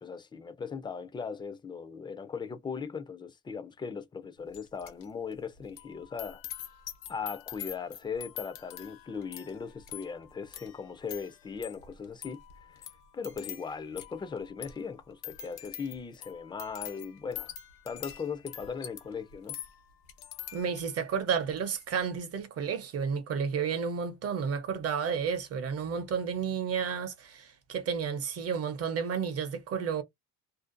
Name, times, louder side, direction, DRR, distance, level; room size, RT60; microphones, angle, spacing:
voice 1, 0.0-6.4 7.1-12.9 13.1-17.5 17.9-19.6, left 5 dB, 15° left, 0.3 m, -38 dB
sound 1, 4.5-5.1 5.3-21.1 21.5-21.8, left 11 dB, 85° left, 0.9 m, -45 dB
voice 2, 20.5-30.0, right 6 dB, 40° right, 0.6 m, -31 dB
2.5 x 2.1 x 2.4 m
cardioid pair, 130°, 36 cm